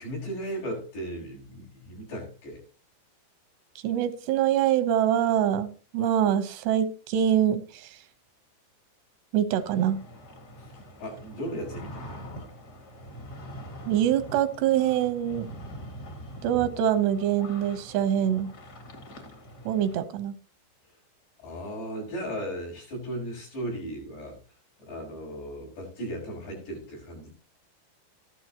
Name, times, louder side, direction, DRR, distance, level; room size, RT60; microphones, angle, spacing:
voice 1, 0.0-2.6 10.6-10.7 11.0-12.3 21.4-24.4 24.8-27.3, equal, 80° left, -3 dB, 8.2 m, -36 dB
voice 2, 3.8-8.0 9.3-10.0 13.9-15.5 16.4-18.5 19.7-20.3, right 10 dB, 90° right, 12 dB, 3.1 m, -24 dB
sound 1, 9.6-20.0, equal, 40° left, 1.5 m, -44 dB
15.0 x 12.5 x 2.9 m, 0.36 s
omnidirectional pair, 4.7 m